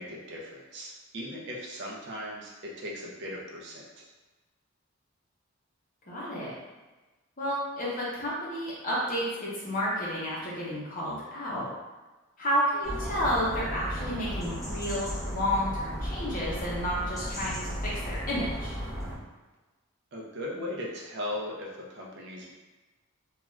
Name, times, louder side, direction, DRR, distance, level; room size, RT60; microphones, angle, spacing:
voice 1, 0.0-4.0 20.1-22.5, left 1 dB, 55° right, -3 dB, 0.5 m, -38 dB
voice 2, 6.1-6.5 7.4-11.7 12.4-18.8, equal, 40° left, -7 dB, 0.8 m, -31 dB
sound 1, 12.8-19.1, equal, ahead, 0.6 m, -35 dB
2.4 x 2.3 x 3.1 m, 1.2 s
head